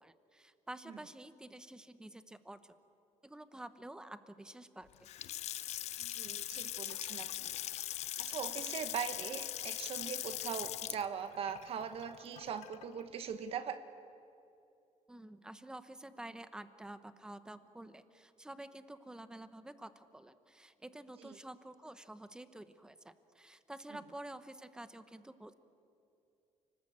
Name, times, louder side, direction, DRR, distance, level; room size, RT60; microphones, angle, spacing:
voice 1, 0.0-2.7 3.2-5.1 15.1-25.5, right 1 dB, 5° right, 12 dB, 0.9 m, -50 dB
Water tap faucet / Sink (filling or washing) / Splash splatter, 4.9-13.0, left 13 dB, 60° left, 0.6 m, -41 dB
voice 2, 6.0-7.5 8.2-13.8 21.2-21.4, right 7 dB, 50° right, 10 dB, 1.2 m, -41 dB
29.0 x 19.5 x 8.7 m, 2.7 s
cardioid pair, 170°, 13 cm